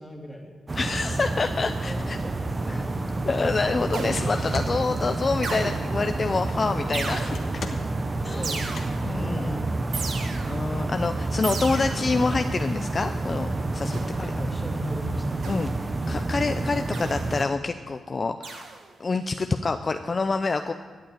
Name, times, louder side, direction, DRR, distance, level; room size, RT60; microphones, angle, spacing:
voice 1, 0.0-0.6 1.5-2.9 8.2-10.1 14.0-15.4, right 1 dB, 5° left, 1 dB, 2.6 m, -38 dB
sound 1, 0.7-17.4, right 2 dB, 30° right, 0.8 m, -29 dB
voice 2, 0.8-2.2 2.7-2.8 3.3-7.8 8.2-8.4 9.0-9.5 10.5-14.0 15.5-15.7 16.1-18.6 19.0-20.7, left 4 dB, 40° left, 8 dB, 0.5 m, -27 dB
sound 2, 2.1-8.9, left 4 dB, 65° left, 1.3 m, -43 dB
sound 3, 3.9-4.5 5.4-6.1 6.9-7.6 8.4-9.2 9.9-10.7 11.4-12.2 13.9-14.3 15.4-15.9 16.9-17.4 18.4-18.9, right 4 dB, 75° right, 1.5 m, -35 dB
13.0 x 7.7 x 9.1 m, 1.5 s
cardioid pair, 75°, 0 cm